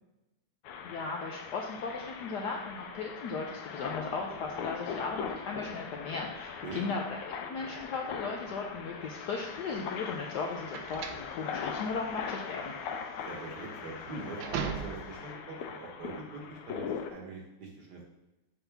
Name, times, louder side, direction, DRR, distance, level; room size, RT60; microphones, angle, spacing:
sound 1, 0.6-17.1, left 6 dB, 85° left, 1.7 m, -41 dB
voice 1, 0.8-12.7, left 4 dB, 70° left, 1 dB, 1.0 m, -37 dB
sound 2, 9.3-15.3, right 7 dB, 70° right, 1.0 m, -40 dB
voice 2, 13.1-18.0, right 3 dB, 55° right, 0 dB, 1.6 m, -43 dB
7.0 x 5.7 x 3.4 m, 1.0 s
omnidirectional pair, 2.4 m